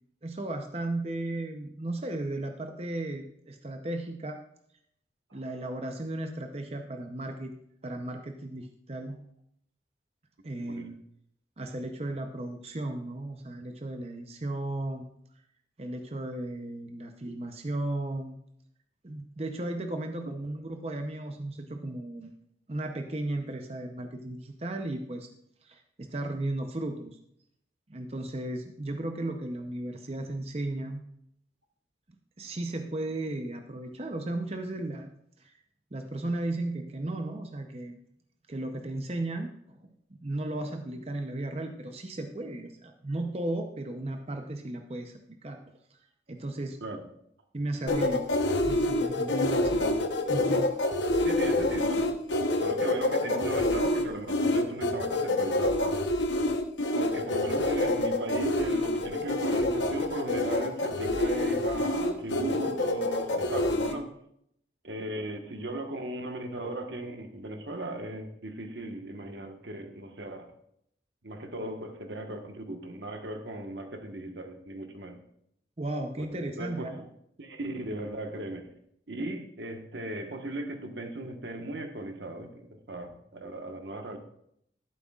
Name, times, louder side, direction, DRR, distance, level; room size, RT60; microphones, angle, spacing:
voice 1, 0.2-4.4 5.3-7.5 7.8-9.2 10.4-11.0 11.6-15.0 15.8-18.4 19.0-22.3 22.7-25.3 25.6-27.2 27.9-31.0 32.4-35.1 35.4-35.5 35.9-38.0 38.5-39.9 40.2-45.6 46.3-46.8 47.5-48.3 48.7-50.0 50.3-50.7 75.8-77.0, right 1 dB, 35° right, 4 dB, 0.7 m, -35 dB
sound 1, 47.9-63.9, left 2 dB, 85° left, 1.0 m, -27 dB
voice 2, 51.2-52.1 52.5-56.0 56.9-64.1 64.8-70.5 71.2-75.2 76.2-76.3 76.6-76.9 77.4-78.7 79.1-84.2, right 1 dB, 80° right, 4 dB, 1.3 m, -37 dB
12.5 x 11.0 x 2.4 m, 0.72 s
head